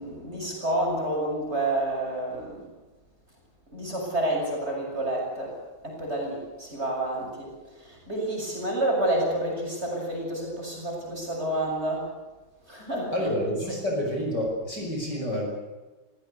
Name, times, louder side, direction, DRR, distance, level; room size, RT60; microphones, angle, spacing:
voice 1, 0.0-2.6 3.7-5.6 5.8-12.1 12.7-13.3 13.7-13.8, right 1 dB, 20° right, -1 dB, 7.2 m, -29 dB
voice 2, 13.1-15.4, equal, 35° left, 0 dB, 6.5 m, -28 dB
25.0 x 17.0 x 8.3 m, 1.2 s
omnidirectional pair, 3.4 m